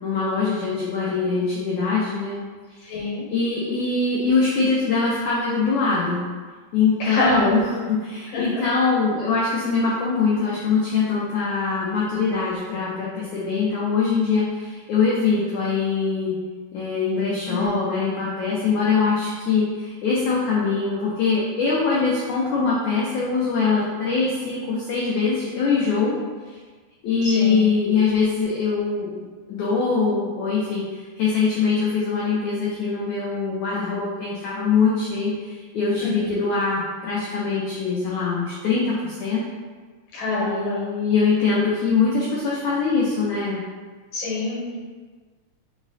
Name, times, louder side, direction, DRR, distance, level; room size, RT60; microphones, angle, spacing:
voice 1, 0.0-6.2 6.7-16.3 16.7-26.2 26.5-26.6 27.0-29.2 29.5-30.8 31.2-39.4 40.4-43.6, left 4 dB, 90° left, -6 dB, 1.6 m, -23 dB
voice 2, 2.9-3.3 7.0-7.6 8.3-8.7 17.5-17.7 27.2-27.7 36.0-36.3 40.1-40.9 44.1-44.8, left 2 dB, 70° left, -6 dB, 2.5 m, -26 dB
5.7 x 2.0 x 4.0 m, 1.4 s
omnidirectional pair, 4.1 m